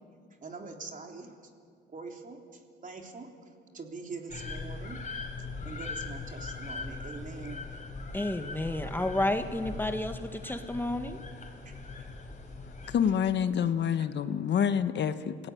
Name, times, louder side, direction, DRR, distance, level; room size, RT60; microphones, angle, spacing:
voice 1, 0.4-1.3 1.9-3.3 3.7-5.0 5.6-7.7 11.7-12.1 12.8-13.0, right 4 dB, 40° right, 3 dB, 3.6 m, -43 dB
sound 1, 4.3-13.1, left 3 dB, 40° left, 4.4 m, -40 dB
voice 2, 8.1-11.2, left 1 dB, 10° left, 7 dB, 1.5 m, -31 dB
voice 3, 12.9-15.5, left 8 dB, 60° left, 11 dB, 1.1 m, -27 dB
27.0 x 17.5 x 9.4 m, 2.3 s
cardioid pair, 90°, 20 cm